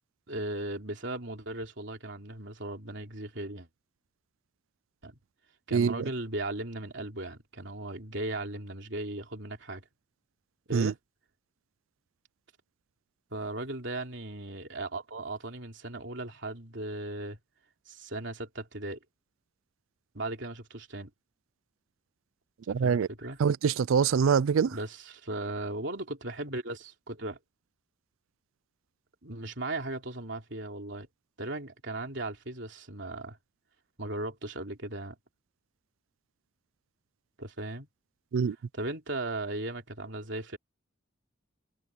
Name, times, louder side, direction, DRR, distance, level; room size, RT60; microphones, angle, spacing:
voice 1, 0.3-3.7 5.0-5.2 5.7-9.8 10.7-11.0 13.3-17.4 17.9-19.0 20.1-21.1 22.7-23.4 24.7-27.4 29.2-31.1 31.4-33.4 34.0-35.2 37.4-37.9 38.7-40.6, right 2 dB, 60° right, 3.5 m, -37 dB
voice 2, 5.7-6.1 10.7-10.9 22.7-23.1 23.4-24.8 38.3-38.6, right 6 dB, 75° right, 0.4 m, -25 dB
head